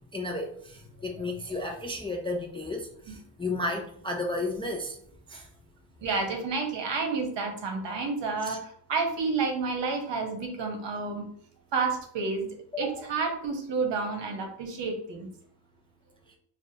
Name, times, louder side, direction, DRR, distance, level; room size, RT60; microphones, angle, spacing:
voice 1, 0.1-5.0 5.3-5.5 8.4-8.6 12.7-13.1, left 2 dB, 15° left, 1 dB, 0.3 m, -33 dB
voice 2, 6.0-11.3 11.7-12.5 12.8-15.3, right 4 dB, 60° right, 3 dB, 1.1 m, -30 dB
4.8 x 2.2 x 2.8 m, 0.64 s
cardioid pair, 115°, 47 cm